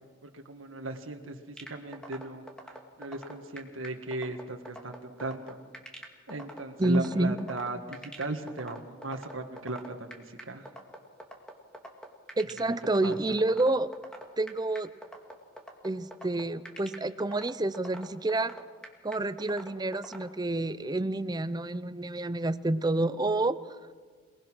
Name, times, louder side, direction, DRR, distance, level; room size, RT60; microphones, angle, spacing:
voice 1, 0.2-5.6 6.3-10.7 13.0-13.4, right 2 dB, 85° right, 4 dB, 1.6 m, -37 dB
sound 1, 1.6-20.2, equal, 5° left, 2.3 m, -43 dB
voice 2, 6.8-7.4 12.4-13.9 14.4-14.9 15.8-18.5 19.0-23.6, right 2 dB, 20° right, 14 dB, 0.6 m, -28 dB
28.0 x 19.5 x 6.2 m, 1.5 s
head